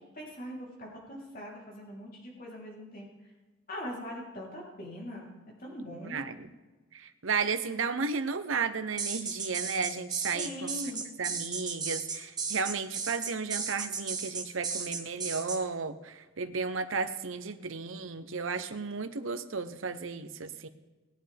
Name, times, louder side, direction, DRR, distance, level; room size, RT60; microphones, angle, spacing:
voice 1, 0.2-3.1 3.7-5.3 5.6-6.3 10.3-11.1, equal, 45° left, -3 dB, 3.4 m, -41 dB
voice 2, 6.0-6.5 6.9-10.9 11.2-20.7, right 5 dB, 75° right, 10 dB, 0.8 m, -34 dB
sound 1, 9.0-15.6, right 5 dB, 20° right, 1.3 m, -35 dB
19.5 x 9.1 x 3.5 m, 1.2 s
head